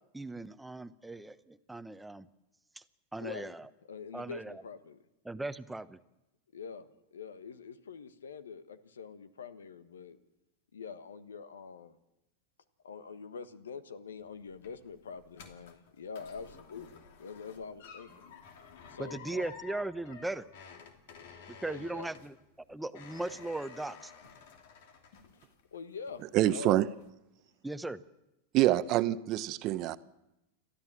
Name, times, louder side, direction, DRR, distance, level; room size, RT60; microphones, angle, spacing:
voice 1, 0.1-2.3 3.1-3.6 4.1-4.6 5.2-6.0 19.0-20.5 21.6-22.3 22.7-24.1 27.6-28.0, right 2 dB, 5° right, 0.9 m, -38 dB
voice 2, 3.2-3.5 3.8-5.0 6.5-10.2 10.7-12.0 12.8-18.1 18.9-19.5 21.7-22.1 25.7-26.8, left 5 dB, 80° left, 1.3 m, -45 dB
sound 1, 14.2-25.8 26.1-26.6 27.0-27.1, left 7 dB, 65° left, 2.8 m, -52 dB
voice 3, 26.3-26.9 28.5-30.0, right 14 dB, 45° right, 0.8 m, -26 dB
29.5 x 13.0 x 7.6 m
hypercardioid pair, 95°, 0 cm